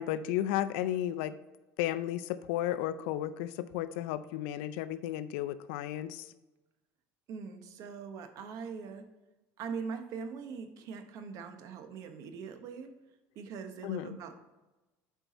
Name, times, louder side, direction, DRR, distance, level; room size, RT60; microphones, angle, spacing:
voice 1, 0.0-1.3 1.8-6.3 13.8-14.1, left 12 dB, 85° left, 13 dB, 0.4 m, -33 dB
voice 2, 7.3-9.0 9.6-12.9 13.3-14.3, right 5 dB, 55° right, 7 dB, 1.0 m, -42 dB
8.0 x 4.6 x 4.1 m, 1.1 s
cardioid pair, 130°, 7 cm